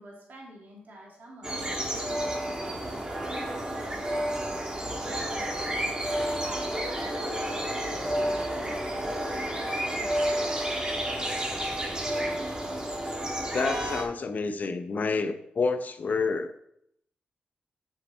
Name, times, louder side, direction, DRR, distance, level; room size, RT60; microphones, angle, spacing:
voice 1, 0.0-5.9 6.2-10.6 11.1-12.5, right 1 dB, 70° right, -3 dB, 3.3 m, -48 dB
sound 1, 1.4-14.0, right 1 dB, 25° right, 2.0 m, -30 dB
voice 2, 13.5-16.5, left 4 dB, 55° left, 9 dB, 0.8 m, -28 dB
7.5 x 6.7 x 4.5 m, 0.74 s
cardioid pair, 70°, 3 cm